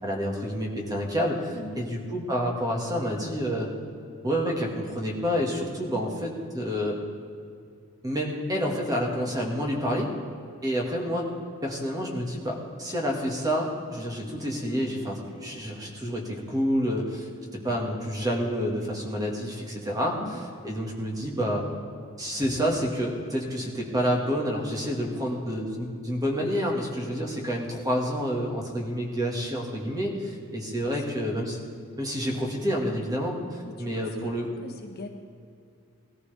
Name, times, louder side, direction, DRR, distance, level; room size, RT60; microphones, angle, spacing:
voice 1, 0.0-3.7 4.2-7.0 8.0-10.1 10.6-11.3 11.6-17.3 17.6-20.4 20.6-21.7 22.2-31.6 32.0-34.5, equal, 15° right, 0 dB, 1.9 m, -28 dB
voice 2, 1.5-1.9 14.7-15.0 20.1-20.4 26.3-27.2 33.6-35.1, left 1 dB, 45° left, 3 dB, 1.2 m, -44 dB
19.0 x 14.0 x 3.5 m, 2.4 s
head